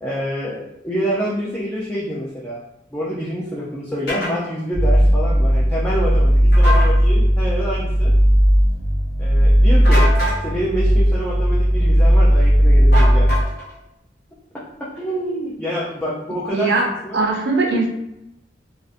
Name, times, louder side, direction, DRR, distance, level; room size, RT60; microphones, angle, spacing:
voice 1, 0.0-2.6 2.9-8.1 9.2-10.1 10.4-13.4 14.8-16.7 17.0-17.2, equal, 5° left, -7 dB, 0.3 m, -27 dB
sound 1, 4.1-4.3 6.5-6.9 9.8-10.4 12.9-13.7, left 1 dB, 60° left, 0.9 m, -24 dB
sound 2, 4.7-13.4, equal, 85° left, 0.6 m, -15 dB
voice 2, 16.5-16.9 17.1-17.9, right 3 dB, 70° right, 1 dB, 0.5 m, -19 dB
2.4 x 2.0 x 2.5 m, 0.85 s
head